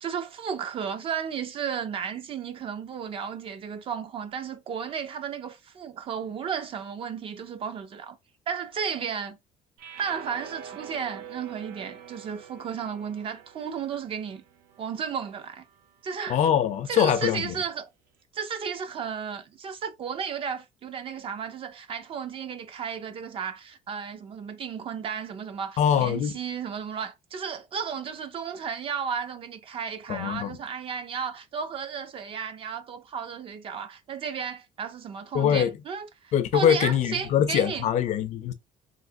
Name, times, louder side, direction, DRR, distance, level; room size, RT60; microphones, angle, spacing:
voice 1, 0.0-8.2 8.5-9.4 10.0-14.4 14.8-15.6 16.0-16.4 16.9-17.9 18.3-37.9, right 7 dB, 35° right, 0.4 m, -34 dB
sound 1, 9.8-16.0, right 8 dB, 85° right, 0.6 m, -46 dB
voice 2, 16.3-17.5 25.8-26.3 30.1-30.6 35.3-35.7 36.3-38.5, left 9 dB, 50° left, 0.5 m, -23 dB
3.2 x 2.8 x 2.6 m
cardioid pair, 160°, 15 cm